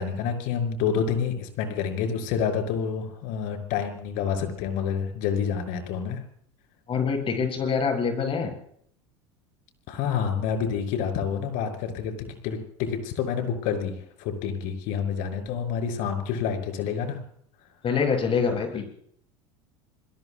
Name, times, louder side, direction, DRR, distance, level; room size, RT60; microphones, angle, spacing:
voice 1, 0.0-6.2 9.9-12.1 12.4-17.2, left 7 dB, 65° left, 5 dB, 6.2 m, -28 dB
voice 2, 6.9-8.5 17.8-18.9, left 5 dB, 35° left, 3 dB, 7.9 m, -25 dB
29.0 x 21.5 x 2.3 m, 0.64 s
hypercardioid pair, 95°, 15 cm